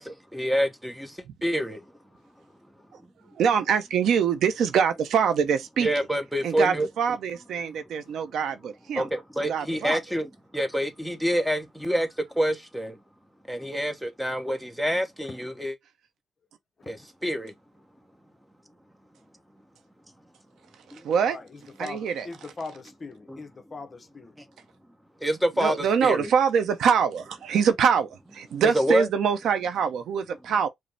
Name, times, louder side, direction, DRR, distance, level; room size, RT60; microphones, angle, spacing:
voice 1, 0.0-1.8 5.8-6.9 8.9-13.0 13.5-15.8 16.9-17.5 20.9-21.1 24.4-24.5 25.2-26.3 28.7-29.1, equal, ahead, 0.9 m, -27 dB
voice 2, 3.4-5.9 6.4-9.1 9.5-10.0 21.0-21.4 21.8-22.3 25.6-30.7, right 7 dB, 70° right, 0.6 m, -24 dB
voice 3, 21.3-24.3, left 3 dB, 35° left, 0.7 m, -41 dB
5.1 x 2.0 x 3.2 m
cardioid pair, 90°, 0 cm